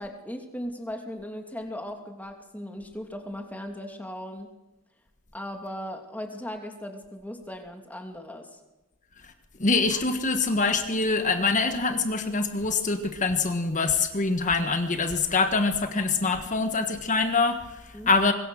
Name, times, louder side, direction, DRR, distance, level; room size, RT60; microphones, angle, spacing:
voice 1, 0.0-4.5 5.3-8.6 17.9-18.1, equal, 10° left, 3 dB, 2.8 m, -37 dB
voice 2, 9.6-17.8 18.1-18.3, left 3 dB, 35° left, 7 dB, 1.4 m, -24 dB
24.5 x 22.0 x 6.5 m, 1.0 s
head